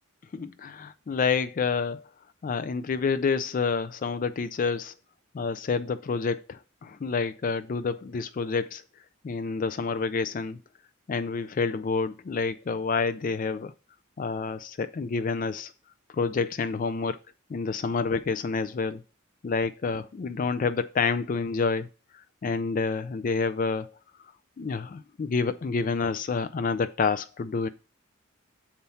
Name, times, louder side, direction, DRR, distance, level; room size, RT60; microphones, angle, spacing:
voice 1, 0.3-2.0 2.4-4.9 5.3-8.8 9.2-10.6 11.1-13.7 14.2-15.7 16.1-17.2 17.5-19.0 19.4-21.9 22.4-23.9 24.6-27.7, left 4 dB, 40° left, 0.3 m, -28 dB
6.9 x 4.4 x 5.5 m
head